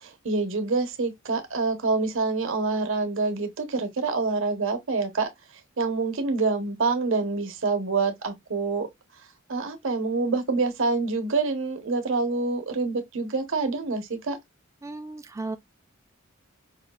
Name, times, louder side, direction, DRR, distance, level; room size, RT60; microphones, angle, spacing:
voice 1, 0.0-5.3 5.8-8.9 9.5-14.4, right 3 dB, 65° right, 0.8 m, -26 dB
voice 2, 14.8-15.6, right 2 dB, 15° right, 0.3 m, -35 dB
5.1 x 2.3 x 2.2 m
head